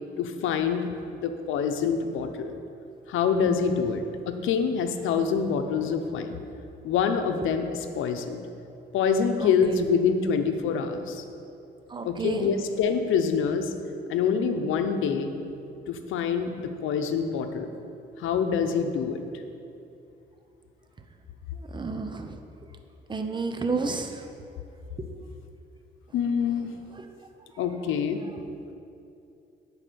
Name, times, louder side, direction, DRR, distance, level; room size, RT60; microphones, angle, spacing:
voice 1, 0.2-2.5 3.1-6.4 6.8-7.7 7.9-8.4 8.9-11.2 12.0-13.7 14.1-15.3 15.9-17.7 18.2-19.2 26.1-26.7 27.6-28.2, left 6 dB, 85° left, 7 dB, 0.8 m, -26 dB
voice 2, 9.4-9.8 11.9-12.5 21.6-22.4 23.1-24.2 28.4-28.5, right 4 dB, 25° right, 6 dB, 0.8 m, -31 dB
9.8 x 5.0 x 6.9 m, 2.7 s
cardioid pair, 90°, 20 cm